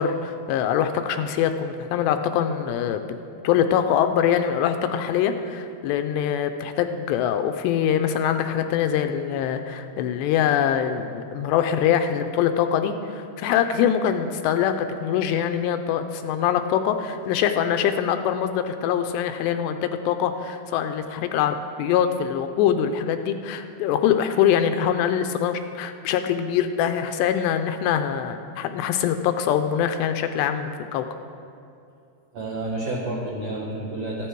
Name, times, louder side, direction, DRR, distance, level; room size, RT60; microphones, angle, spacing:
voice 1, 0.0-3.2 3.4-31.1, left 9 dB, 80° left, 8 dB, 2.7 m, -23 dB
voice 2, 32.3-34.3, right 2 dB, 80° right, -3 dB, 1.5 m, -30 dB
14.5 x 12.5 x 4.6 m, 2.6 s
omnidirectional pair, 5.2 m